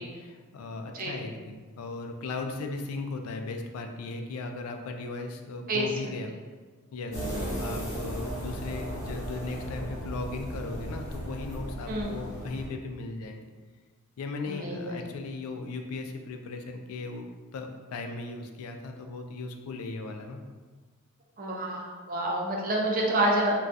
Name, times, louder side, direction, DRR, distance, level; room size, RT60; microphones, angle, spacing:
voice 1, 0.0-6.3 6.9-13.4 14.2-20.4, left 3 dB, 85° left, 5 dB, 0.4 m, -37 dB
voice 2, 5.7-6.1 7.1-7.6 11.9-12.1 14.5-15.0 21.4-23.6, right 1 dB, 40° right, -2 dB, 0.5 m, -29 dB
sound 1, 7.1-12.7, right 1 dB, 55° left, 1.0 m, -36 dB
2.3 x 2.3 x 3.9 m, 1.4 s
head